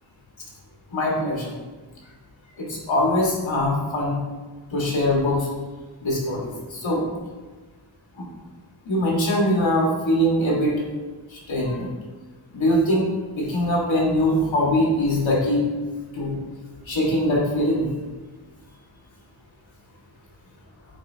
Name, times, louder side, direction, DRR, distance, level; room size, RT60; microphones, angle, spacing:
voice 1, 0.9-1.5 2.6-4.2 4.7-5.5 6.0-7.0 8.2-8.3 8.9-10.8 11.3-11.9 12.5-13.1 13.4-15.6 16.1-16.4 16.9-17.9, left 1 dB, 80° left, -3 dB, 1.8 m, -22 dB
8.3 x 4.5 x 2.8 m, 1.3 s
wide cardioid pair, 95°, 45 cm